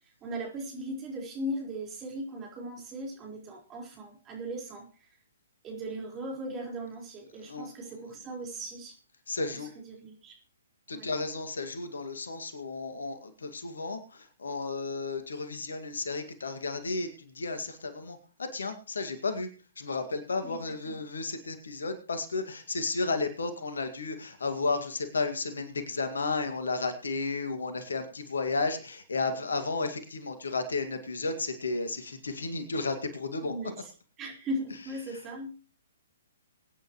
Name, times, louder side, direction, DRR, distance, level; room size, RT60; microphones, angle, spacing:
voice 1, 0.2-4.8 5.6-8.9 9.9-10.3 10.9-11.1 20.4-20.5 20.9-21.0 33.4-33.9 34.2-35.5, right 1 dB, 20° right, -1 dB, 4.5 m, -38 dB
voice 2, 7.4-8.1 9.3-9.7 10.9-19.5 19.8-33.5 35.1-35.2, left 3 dB, 65° left, 8 dB, 2.1 m, -33 dB
23.0 x 9.5 x 3.1 m, 0.38 s
figure-of-eight pair, 125°, 0 cm